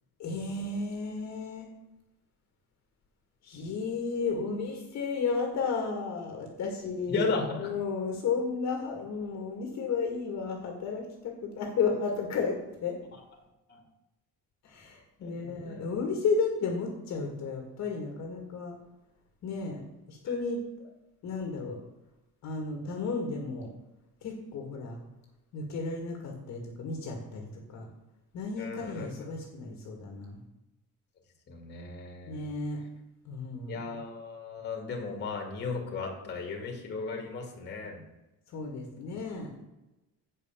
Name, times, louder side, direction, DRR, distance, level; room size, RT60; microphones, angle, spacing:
voice 1, 0.2-1.7 3.4-7.3 7.6-13.0 14.6-18.8 19.4-19.8 20.1-20.9 21.2-21.8 22.4-23.7 24.2-25.0 25.5-27.9 28.3-30.4 32.2-32.8 33.3-33.8 38.5-39.6, left 4 dB, 50° left, 1 dB, 1.9 m, -33 dB
voice 2, 7.1-7.7 13.7-13.8 15.2-15.9 28.6-29.3 31.5-32.5 33.7-38.0, left 4 dB, 30° left, 1 dB, 2.1 m, -35 dB
8.1 x 5.5 x 7.1 m, 0.96 s
cardioid pair, 160°, 35 cm